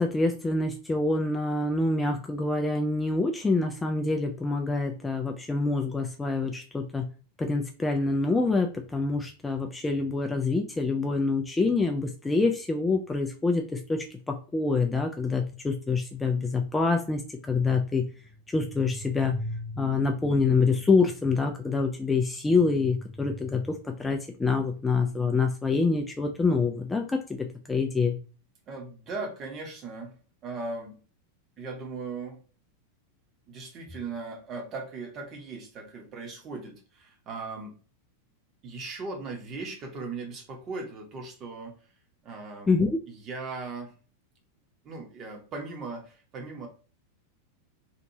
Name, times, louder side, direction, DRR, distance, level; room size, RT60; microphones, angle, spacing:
voice 1, 0.0-7.0 7.4-18.0 18.5-28.2 42.7-43.0, left 3 dB, 10° left, 3 dB, 0.3 m, -26 dB
voice 2, 28.7-30.1 30.4-31.0 31.6-32.4 33.5-37.7 38.6-41.8 42.2-42.7 43.1-43.9 44.8-46.7, right 3 dB, 30° right, 2 dB, 0.9 m, -38 dB
2.9 x 2.6 x 2.7 m, 0.37 s
figure-of-eight pair, 90°, 0 cm